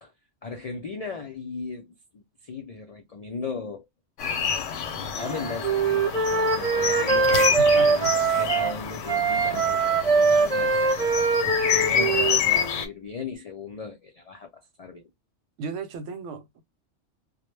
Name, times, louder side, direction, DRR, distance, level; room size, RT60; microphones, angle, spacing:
voice 1, 0.4-3.9 4.8-10.8 11.7-15.1, left 5 dB, 65° left, 0.3 m, -37 dB
sound 1, 4.2-12.9, left 7 dB, 85° left, 0.9 m, -28 dB
Wind instrument woodwind instrument, 5.2-8.7 9.1-12.8, right 4 dB, 45° right, 0.5 m, -23 dB
voice 2, 7.3-8.2 15.6-16.6, right 3 dB, 80° right, 1.0 m, -35 dB
2.1 x 2.1 x 3.1 m
omnidirectional pair, 1.2 m